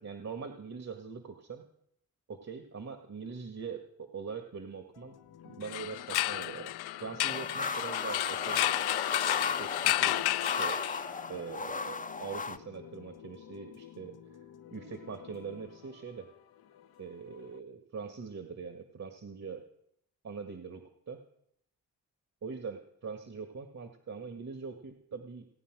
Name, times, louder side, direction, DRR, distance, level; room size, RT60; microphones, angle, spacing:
voice 1, 0.0-1.6 2.3-5.2 5.5-6.7 7.0-8.7 9.6-10.8 11.3-14.2 14.7-16.3 17.0-19.6 20.2-21.2 22.4-25.5, right 5 dB, 45° right, 6 dB, 1.9 m, -42 dB
sound 1, 4.9-17.6, left 9 dB, 70° left, 1.2 m, -53 dB
sound 2, 5.6-11.3, left 16 dB, 85° left, 0.5 m, -31 dB
sound 3, 7.3-12.6, left 4 dB, 20° left, 0.8 m, -36 dB
17.0 x 9.4 x 6.2 m, 0.72 s
supercardioid pair, 55°, 38 cm